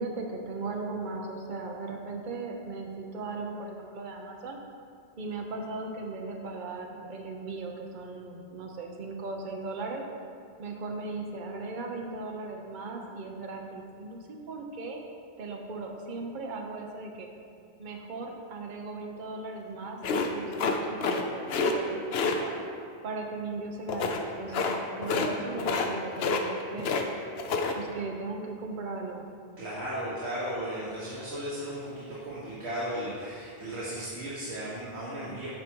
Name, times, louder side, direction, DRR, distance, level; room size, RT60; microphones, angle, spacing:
voice 1, 0.0-4.6 5.2-10.0 10.6-15.0 15.4-17.3 17.8-22.5 23.0-26.9 27.7-29.3, right 3 dB, 50° right, 2 dB, 0.9 m, -37 dB
sound 1, 20.0-21.2 21.5-21.7 22.1-22.4 23.9-24.2 24.5-24.8 25.0-25.3 25.6-25.9 26.2-27.0 27.4-27.7, left 4 dB, 70° left, 0.9 m, -28 dB
voice 2, 29.6-35.5, right 1 dB, 80° right, -8 dB, 1.6 m, -35 dB
9.5 x 4.9 x 4.5 m, 2.3 s
omnidirectional pair, 1.1 m